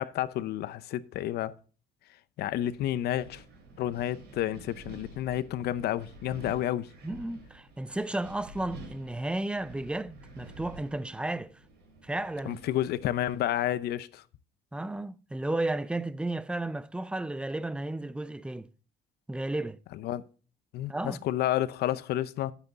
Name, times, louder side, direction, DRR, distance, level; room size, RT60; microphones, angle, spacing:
voice 1, 0.0-1.5 2.4-3.4 3.8-6.9 12.5-14.2 20.0-20.2 20.7-22.5, left 12 dB, 70° left, 0.7 m, -30 dB
Wind, 2.4-13.9, right 2 dB, 75° right, 4.6 m, -50 dB
voice 2, 7.0-11.6 12.0-12.6 14.7-18.7 19.3-19.8 20.9-21.2, right 2 dB, 5° right, 0.5 m, -33 dB
10.0 x 8.0 x 4.0 m
cardioid pair, 110°, 17 cm